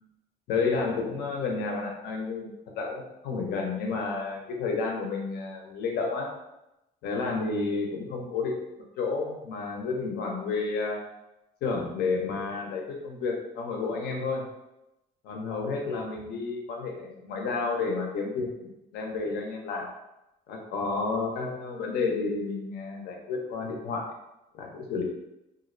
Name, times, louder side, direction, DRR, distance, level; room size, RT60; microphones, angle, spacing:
voice 1, 0.5-6.3 7.0-8.5 9.0-11.0 11.6-14.4 15.2-19.9 20.5-24.1 24.5-25.0, left 4 dB, 75° left, 0 dB, 0.6 m, -31 dB
2.4 x 2.0 x 2.5 m, 0.92 s
cardioid pair, 110°, 17 cm